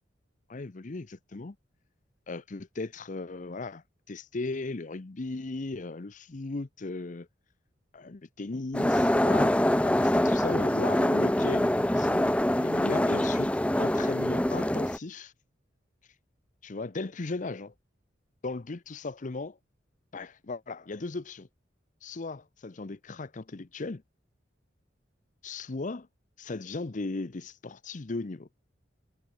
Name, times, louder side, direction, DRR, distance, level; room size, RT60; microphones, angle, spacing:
voice 1, 0.5-1.6 2.3-7.3 7.9-9.6 9.8-12.3 12.6-15.3 16.6-17.7 18.4-19.6 20.1-21.5 22.0-24.0 25.4-26.1 26.4-28.5, left 3 dB, 45° left, 0.7 m, -37 dB
sound 1, 8.7-15.0, left 1 dB, 5° left, 0.7 m, -25 dB
head